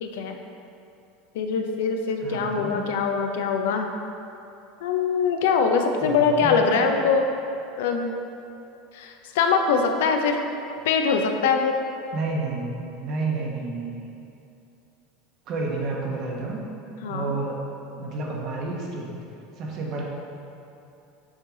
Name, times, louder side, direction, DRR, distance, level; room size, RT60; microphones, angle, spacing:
voice 1, 0.0-0.4 1.3-3.9 4.8-7.3 7.8-8.1 8.9-10.4 10.8-11.8 17.0-17.3, left 5 dB, 80° left, 4 dB, 0.6 m, -23 dB
voice 2, 2.2-2.8 6.0-6.7 12.1-14.0 15.5-16.6 17.1-17.6 17.9-19.1 19.6-20.0, right 3 dB, 50° right, -2 dB, 1.2 m, -30 dB
6.4 x 4.8 x 3.8 m, 2.8 s
supercardioid pair, 120°, 0 cm